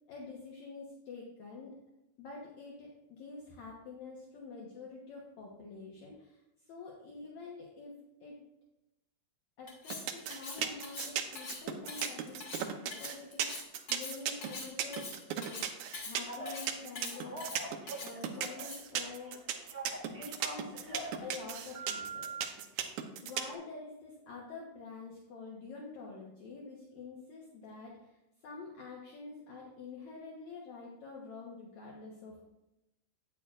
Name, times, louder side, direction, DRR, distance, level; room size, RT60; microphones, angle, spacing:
voice 1, 0.1-1.7 2.2-8.4 9.6-15.1 15.5-15.7 16.0-17.5 18.0-19.4 20.1-22.6 23.2-32.5, left 4 dB, 65° left, -3 dB, 2.2 m, -47 dB
Cutlery silverware, 9.7-19.0, left 3 dB, 90° left, 0.8 m, -44 dB
sound 1, 9.9-23.6, right 10 dB, 75° right, 1.9 m, -36 dB
Telephone, 16.2-16.6 17.1-18.7 19.0-21.2 21.7-22.4, right 2 dB, 30° right, 1.9 m, -43 dB
11.0 x 8.8 x 2.5 m, 0.90 s
omnidirectional pair, 4.0 m